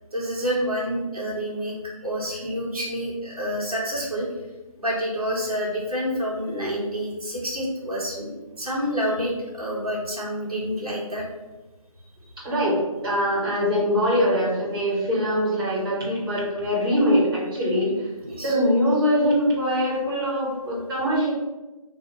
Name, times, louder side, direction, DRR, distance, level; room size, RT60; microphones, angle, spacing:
voice 1, 0.1-4.3 4.8-11.2 18.3-18.5, equal, 85° right, -5 dB, 1.4 m, -28 dB
voice 2, 12.4-18.1 18.4-21.3, equal, 40° right, -7 dB, 1.3 m, -23 dB
2.7 x 2.2 x 3.9 m, 1.1 s
figure-of-eight pair, 175°, 19 cm